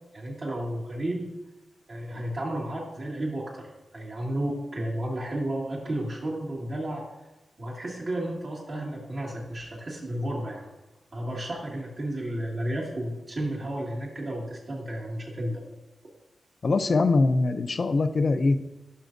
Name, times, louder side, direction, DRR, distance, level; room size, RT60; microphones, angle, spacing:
voice 1, 0.1-1.3 1.9-7.0 7.6-10.7 11.1-15.6, right 1 dB, 60° right, -6 dB, 1.9 m, -32 dB
voice 2, 16.6-18.6, left 3 dB, 60° left, 10 dB, 0.5 m, -22 dB
11.0 x 5.7 x 2.6 m, 1.0 s
cardioid pair, 45°, 0 cm